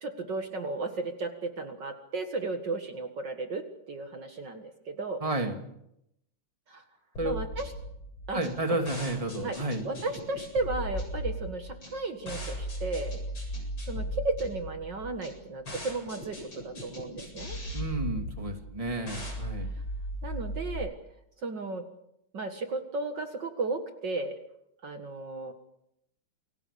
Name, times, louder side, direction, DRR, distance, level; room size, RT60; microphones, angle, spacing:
voice 1, 0.0-5.2 6.7-6.8 7.2-7.7 8.3-8.4 9.4-9.6 9.8-13.2 13.9-17.6 20.2-20.9 21.4-21.8 22.3-24.4 24.8-25.5, right 3 dB, 55° right, 6 dB, 2.3 m, -34 dB
voice 2, 5.2-5.6 7.2-7.3 8.3-9.9 17.7-19.7, right 2 dB, 15° right, 4 dB, 2.7 m, -31 dB
sound 1, 7.1-20.7, equal, 65° left, 8.5 m, -37 dB
29.0 x 22.0 x 6.9 m, 0.80 s
omnidirectional pair, 2.4 m